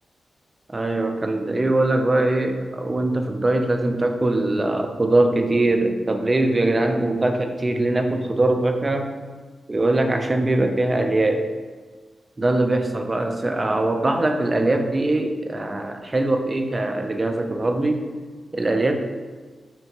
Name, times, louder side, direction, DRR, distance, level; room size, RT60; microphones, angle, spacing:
voice 1, 0.7-9.1 9.7-11.5 12.4-18.0 18.5-19.0, right 2 dB, 30° right, 5 dB, 0.4 m, -22 dB
4.3 x 2.8 x 2.8 m, 1.5 s
cardioid pair, 70°, 0 cm